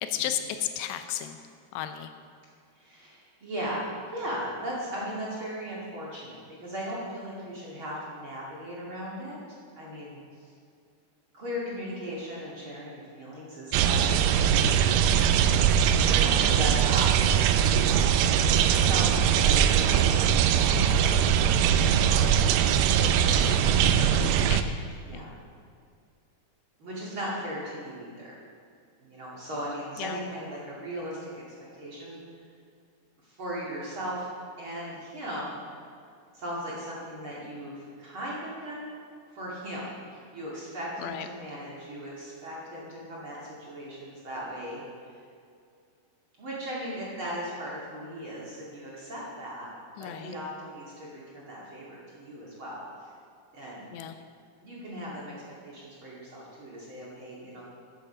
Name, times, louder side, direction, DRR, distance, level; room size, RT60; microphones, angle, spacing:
voice 1, 0.0-1.4 1.7-2.1 23.4-23.9 24.5-24.8 25.1-25.3 29.7-30.2 41.0-41.3 50.0-50.3 53.9-54.2, left 11 dB, 85° left, 8 dB, 2.9 m, -34 dB
voice 2, 2.8-9.4 9.7-10.2 11.3-14.6 15.7-17.9 18.7-24.0 25.1-25.3 26.8-28.3 29.0-31.4 31.8-32.2 33.2-34.3 34.6-35.6 36.3-39.0 39.3-44.8 46.4-49.7 50.0-53.1 53.5-53.9 54.6-57.6, equal, 35° right, -6 dB, 2.7 m, -37 dB
sound 1, 13.7-24.6, right 8 dB, 80° right, 2.4 m, -22 dB
13.5 x 10.5 x 5.0 m, 2.4 s
omnidirectional pair, 4.8 m